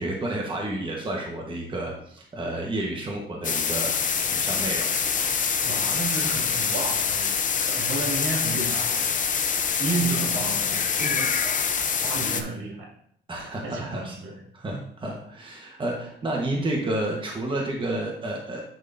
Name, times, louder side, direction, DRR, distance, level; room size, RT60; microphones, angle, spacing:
voice 1, 0.0-3.9 4.3-5.0 13.3-14.1 14.5-18.6, right 1 dB, 25° right, -1 dB, 1.2 m, -30 dB
sound 1, 3.4-12.4, left 6 dB, 40° left, 0.6 m, -25 dB
voice 2, 5.6-7.3 7.5-9.1 9.4-12.9 13.6-14.4, right 3 dB, 75° right, -2 dB, 2.3 m, -32 dB
10.5 x 3.7 x 2.6 m, 0.67 s
cardioid pair, 90°, 20 cm